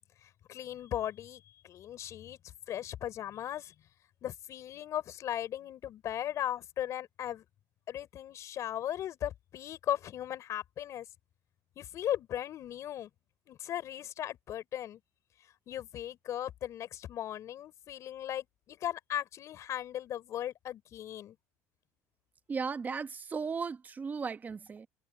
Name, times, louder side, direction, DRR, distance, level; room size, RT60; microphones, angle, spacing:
voice 1, 0.5-2.4 2.7-3.7 4.2-7.4 7.9-11.1 11.8-13.1 13.5-15.0 15.7-21.4, left 11 dB, 50° left, 5.7 m, -37 dB
voice 2, 22.5-24.9, right 5 dB, 25° right, 1.0 m, -36 dB
supercardioid pair, 115°, 7 cm